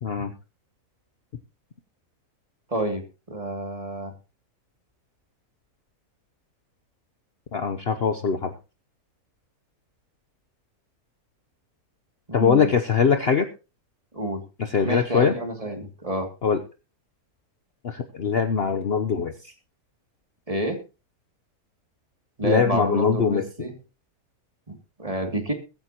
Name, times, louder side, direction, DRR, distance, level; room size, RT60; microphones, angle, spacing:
voice 1, 0.0-0.3 7.5-8.5 12.3-13.5 14.6-15.3 16.4-16.6 17.8-19.5 22.4-23.4, left 6 dB, 45° left, 8 dB, 1.0 m, -22 dB
voice 2, 2.7-4.1 12.3-12.7 14.1-14.4 14.8-16.3 20.5-20.8 22.4-23.7 24.7-25.5, right 1 dB, 20° right, 4 dB, 2.7 m, -29 dB
22.0 x 8.9 x 2.9 m, 0.31 s
omnidirectional pair, 1.6 m